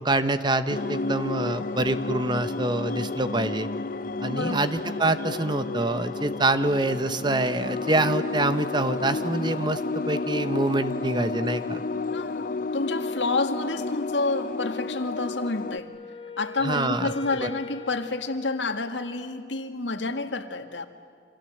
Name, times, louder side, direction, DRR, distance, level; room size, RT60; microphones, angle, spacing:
voice 1, 0.0-3.7 4.2-11.8 16.6-17.1 17.4-17.5, right 2 dB, 25° right, 11 dB, 1.0 m, -26 dB
sound 1, 0.7-15.8, left 3 dB, 50° left, 0.6 m, -31 dB
voice 2, 4.3-4.7 12.1-15.9 16.4-20.9, left 3 dB, 85° left, 7 dB, 1.9 m, -29 dB
Wind instrument woodwind instrument, 15.4-19.3, left 3 dB, 30° left, 1.3 m, -42 dB
29.0 x 25.5 x 8.0 m, 2.3 s
head